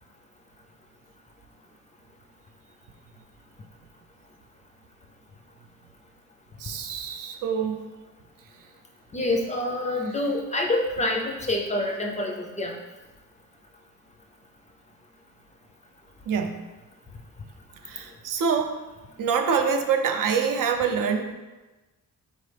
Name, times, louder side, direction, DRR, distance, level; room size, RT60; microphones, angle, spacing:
voice 1, 6.6-7.8 10.2-10.3 16.3-16.6 17.8-18.8 19.2-21.3, right 6 dB, 75° right, 5 dB, 0.5 m, -25 dB
voice 2, 9.1-12.7, left 1 dB, 20° left, 1 dB, 0.4 m, -27 dB
4.1 x 3.1 x 3.3 m, 1.2 s
wide cardioid pair, 150°, 33 cm